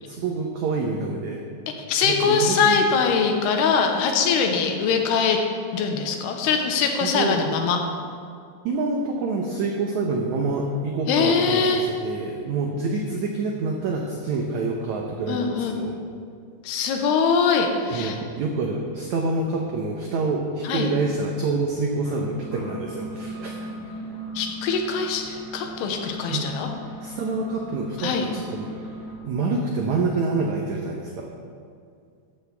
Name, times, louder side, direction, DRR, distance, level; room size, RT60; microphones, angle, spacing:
voice 1, 0.1-1.4 2.0-2.8 7.0-7.4 8.6-15.9 17.9-23.5 26.3-26.5 27.0-28.7 29.2-31.3, right 3 dB, 90° right, 1 dB, 1.6 m, -27 dB
voice 2, 1.9-5.4 5.7-7.8 11.1-11.9 15.3-15.8 16.6-18.2 20.6-20.9 24.4-26.7 28.0-28.3, left 5 dB, 85° left, 3 dB, 3.0 m, -22 dB
sound 1, 22.0-29.1, right 1 dB, 40° left, 2.4 m, -38 dB
13.5 x 12.0 x 3.4 m, 2.3 s
omnidirectional pair, 4.6 m